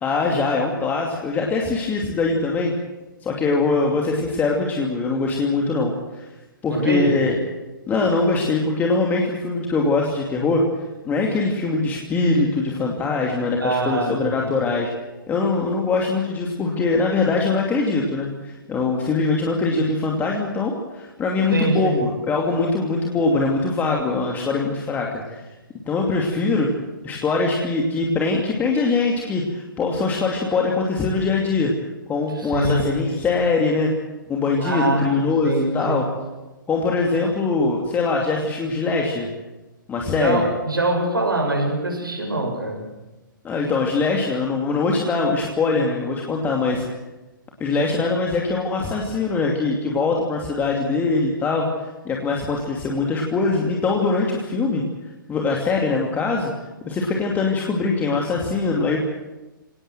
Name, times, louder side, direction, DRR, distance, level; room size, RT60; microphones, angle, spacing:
voice 1, 0.0-2.7 3.2-6.2 6.6-7.3 7.9-10.6 11.0-14.9 15.3-25.5 25.9-26.7 27.0-31.7 32.1-33.9 34.3-36.1 36.7-39.3 39.9-40.4 43.4-46.8 47.6-54.8 55.3-56.5 56.8-59.0, left 3 dB, 15° left, 0 dB, 2.6 m, -22 dB
voice 2, 6.7-7.2 13.6-14.5 21.5-22.0 32.3-33.1 34.6-36.1 40.1-42.9 47.8-48.0, right 2 dB, 80° right, 1 dB, 6.9 m, -24 dB
25.0 x 18.5 x 7.7 m, 1.1 s
figure-of-eight pair, 120°, 11 cm